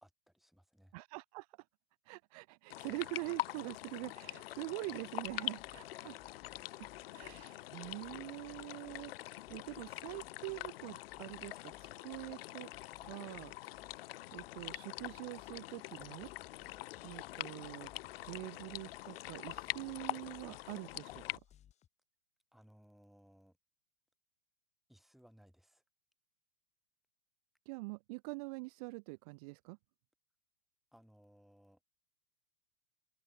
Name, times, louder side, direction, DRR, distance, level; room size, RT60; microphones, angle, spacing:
voice 1, 0.0-0.9 5.8-6.2 22.5-23.6 24.9-25.8 30.9-31.8, equal, ahead, 3.2 m, -63 dB
voice 2, 0.9-1.5 2.1-6.1 7.1-12.7 13.0-13.5 14.3-16.3 17.0-17.9 18.2-21.2 27.7-29.8, right 28 dB, 40° right, 0.7 m, -45 dB
sound 1, 2.7-21.4, left 16 dB, 75° left, 0.4 m, -45 dB
sound 2, 5.2-5.8 6.2-7.4 7.8-9.1 9.4-10.7 11.1-12.3 12.7-14.0 14.3-15.6 16.0-21.9, left 10 dB, 20° left, 4.8 m, -63 dB
open air
hypercardioid pair, 145°, 30 cm